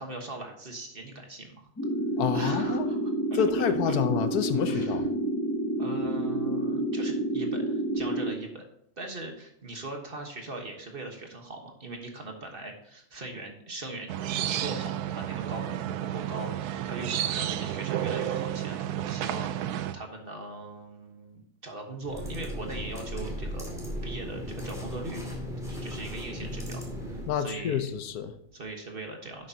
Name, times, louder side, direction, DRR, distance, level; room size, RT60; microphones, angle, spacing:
voice 1, 0.0-1.7 2.3-3.9 4.7-5.0 5.8-8.6 9.0-23.7 24.0-25.2 25.6-28.0 28.5-29.5, right 2 dB, 40° right, 3 dB, 1.3 m, -40 dB
sound 1, 1.8-8.3, right 1 dB, 15° left, 0.4 m, -29 dB
voice 2, 2.2-2.9 3.3-5.1 27.3-28.3, left 8 dB, 75° left, 10 dB, 1.2 m, -28 dB
sound 2, 14.1-19.9, right 11 dB, 85° right, 1.1 m, -31 dB
sound 3, 22.0-27.4, equal, ahead, 2.4 m, -36 dB
11.0 x 7.7 x 2.8 m, 0.74 s
omnidirectional pair, 1.6 m